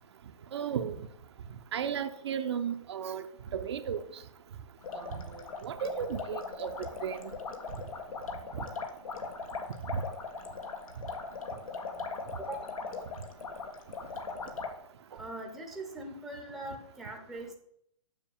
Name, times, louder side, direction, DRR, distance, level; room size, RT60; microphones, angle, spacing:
voice 1, 0.5-1.0 1.7-3.2 3.5-4.0 4.9-7.3 9.9-10.0, right 8 dB, 55° right, 0.7 m, -34 dB
sound 1, 4.8-14.7, left 4 dB, 85° left, 1.7 m, -39 dB
voice 2, 12.4-12.8 15.2-17.5, right 1 dB, ahead, 0.8 m, -41 dB
7.2 x 6.4 x 7.1 m
hypercardioid pair, 165°, 17 cm